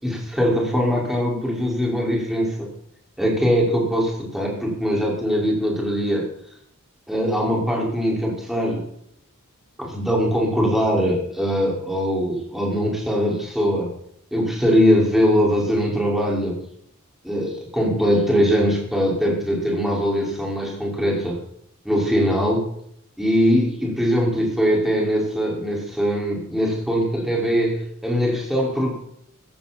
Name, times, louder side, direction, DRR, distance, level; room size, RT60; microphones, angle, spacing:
voice 1, 0.0-2.7 3.2-6.3 7.1-8.8 9.8-14.0 14.3-16.6 17.2-21.4 21.9-22.7 23.2-28.9, equal, ahead, -2 dB, 5.3 m, -21 dB
15.5 x 15.0 x 4.4 m, 0.67 s
head